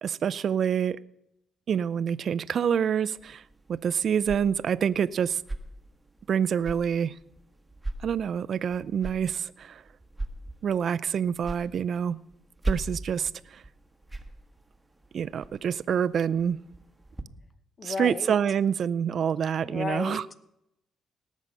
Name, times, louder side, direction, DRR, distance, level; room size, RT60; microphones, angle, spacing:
voice 1, 0.0-1.0 1.7-3.4 3.7-5.4 6.3-7.2 8.0-9.8 10.6-12.2 12.6-13.6 15.1-16.6 17.8-20.2, right 8 dB, 55° right, 0.4 m, -27 dB
sound 1, 3.2-17.2, right 2 dB, 10° right, 1.3 m, -40 dB
voice 2, 17.8-18.4 19.6-20.3, left 4 dB, 40° left, 1.0 m, -33 dB
18.0 x 7.3 x 5.5 m
cardioid pair, 90°, 0 cm